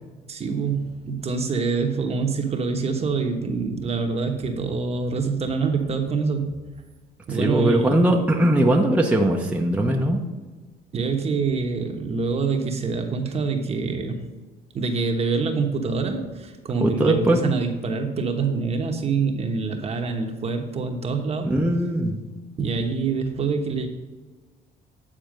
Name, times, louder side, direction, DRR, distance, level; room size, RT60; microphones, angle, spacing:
voice 1, 0.3-6.6 7.3-8.2 10.9-14.3 14.7-21.5 22.6-23.9, right 4 dB, 40° right, 4 dB, 1.1 m, -25 dB
voice 2, 7.3-10.2 16.8-17.4 21.4-22.1, right 1 dB, 10° right, 0 dB, 0.8 m, -20 dB
9.0 x 4.3 x 6.4 m, 1.3 s
cardioid pair, 110°, 17 cm